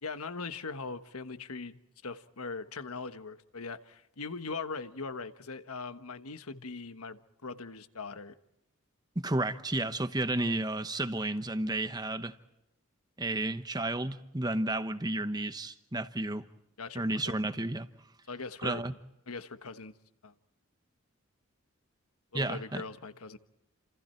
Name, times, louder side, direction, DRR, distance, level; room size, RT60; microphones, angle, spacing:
voice 1, 0.0-8.3 16.8-17.4 18.3-19.0 19.3-19.9 20.2-20.3 22.3-23.4, left 4 dB, 85° left, 1.3 m, -41 dB
voice 2, 9.2-12.4 13.2-16.5 16.9-17.9 18.6-18.9 22.3-22.8, right 2 dB, 20° right, 1.0 m, -32 dB
29.5 x 27.5 x 4.5 m
head